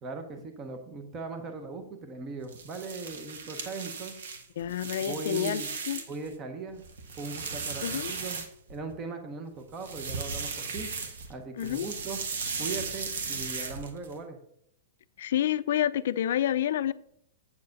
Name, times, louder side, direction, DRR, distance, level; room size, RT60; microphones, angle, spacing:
voice 1, 0.0-4.1 5.0-5.7 6.1-6.8 7.2-10.9 11.3-12.2 12.6-14.4, right 3 dB, 20° right, 0.8 m, -39 dB
sound 1, 2.4-6.3 6.7-8.9 9.7-11.3 11.6-14.1, right 5 dB, 75° right, 1.5 m, -36 dB
voice 2, 4.6-6.0 7.8-8.1 11.6-11.9 15.2-16.9, left 11 dB, 60° left, 0.4 m, -29 dB
8.4 x 4.7 x 6.4 m
supercardioid pair, 175°, 0 cm